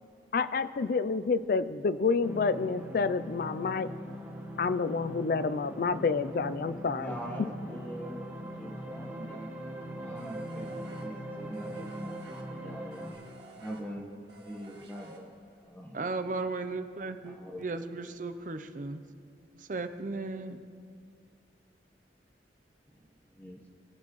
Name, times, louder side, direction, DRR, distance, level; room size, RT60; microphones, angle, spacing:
voice 1, 0.3-3.9 4.6-7.1, left 4 dB, 55° left, 14 dB, 0.4 m, -29 dB
sound 1, 2.2-13.1, equal, 10° right, 1.3 m, -41 dB
voice 2, 6.9-9.5 10.0-13.1 13.5-14.1 14.4-16.3 17.2-17.6 23.3-23.7, right 1 dB, 10° left, -1 dB, 1.1 m, -43 dB
sound 2, 10.1-15.6, right 2 dB, 75° right, 1.7 m, -53 dB
voice 3, 15.9-19.0 19.5-20.7, right 3 dB, 45° right, 9 dB, 0.6 m, -36 dB
22.0 x 7.6 x 3.1 m, 2.2 s
head